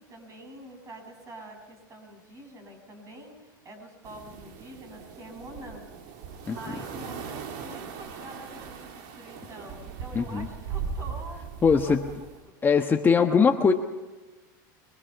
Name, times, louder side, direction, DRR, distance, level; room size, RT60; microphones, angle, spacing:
voice 1, 0.1-6.2 6.4-13.1 13.5-13.6, right 1 dB, 30° right, 4 dB, 7.6 m, -46 dB
sound 1, 4.0-12.4, right 6 dB, 60° right, 2.7 m, -39 dB
voice 2, 10.1-10.5 11.6-12.1 12.6-13.7, left 5 dB, 20° left, 4 dB, 1.2 m, -21 dB
25.5 x 23.0 x 5.9 m, 1.2 s
supercardioid pair, 120°, 11 cm